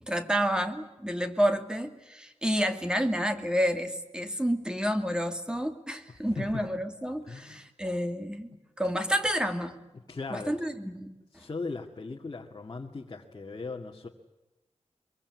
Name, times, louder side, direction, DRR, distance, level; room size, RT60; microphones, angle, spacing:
voice 1, 0.0-8.5 8.8-9.8 10.3-11.4, equal, 5° right, 7 dB, 2.5 m, -29 dB
voice 2, 7.3-7.6 10.1-10.5 11.3-14.1, left 3 dB, 35° left, 0 dB, 2.1 m, -38 dB
24.5 x 23.5 x 9.5 m, 1.0 s
wide cardioid pair, 145°, 11 cm